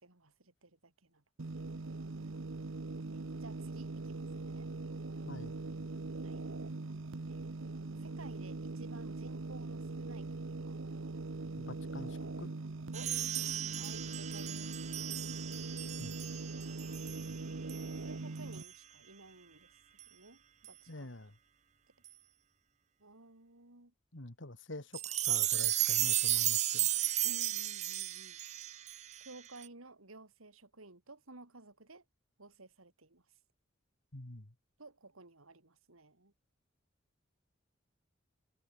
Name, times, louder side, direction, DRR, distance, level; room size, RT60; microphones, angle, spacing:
voice 1, 0.0-1.2 3.1-4.7 6.2-6.4 7.3-7.6 8.0-10.8 12.9-13.1 13.7-14.8 18.0-19.8 20.1-21.1 23.0-23.9 27.2-28.4 29.2-32.0 32.4-33.2 34.8-36.3, right 2 dB, 90° right, 3.2 m, -55 dB
sound 1, 1.4-18.6, right 3 dB, 70° right, 0.9 m, -41 dB
voice 2, 11.6-12.5 16.0-16.2 20.9-21.3 24.1-26.9 34.1-34.5, left 1 dB, 65° left, 2.3 m, -46 dB
sound 2, 12.9-17.4 17.7-17.9 18.5-18.7 20.0-20.1 20.6-20.7 22.1-22.2 24.9-29.7, right 13 dB, 35° right, 0.7 m, -34 dB
head